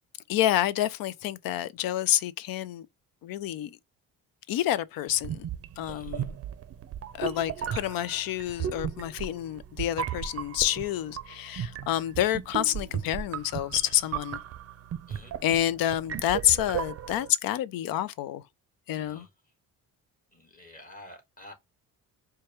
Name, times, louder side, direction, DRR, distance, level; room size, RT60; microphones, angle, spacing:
voice 1, 0.3-2.9 3.2-3.7 4.5-5.5 5.8-6.3 7.1-14.4 15.4-18.4 18.9-19.2, left 12 dB, 70° left, 0.5 m, -28 dB
sound 1, 5.2-17.3, right 9 dB, 40° right, 0.5 m, -36 dB
voice 2, 5.9-6.3 15.1-15.4 18.9-19.3 20.3-21.5, left 1 dB, 20° left, 1.6 m, -50 dB
4.5 x 2.2 x 3.0 m
cardioid pair, 90°, 37 cm